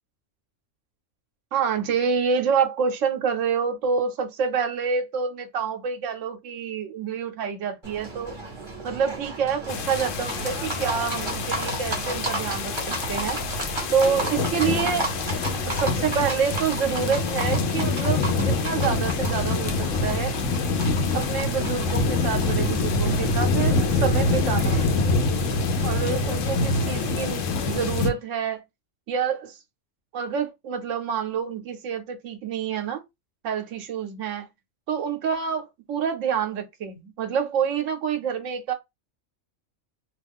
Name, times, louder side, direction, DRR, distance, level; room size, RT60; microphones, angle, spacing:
voice 1, 1.5-8.4 8.8-13.4 13.9-15.1 15.7-20.3 21.1-24.8 25.8-28.6 29.1-29.6 30.1-33.0 33.4-34.5 34.9-38.7, right 6 dB, 85° right, 1.0 m, -27 dB
Livestock farm animals working animals, 7.8-27.7, right 2 dB, 20° right, 1.3 m, -34 dB
sound 1, 9.7-28.1, left 3 dB, 80° left, 1.0 m, -25 dB
2.7 x 2.4 x 3.4 m
omnidirectional pair, 1.3 m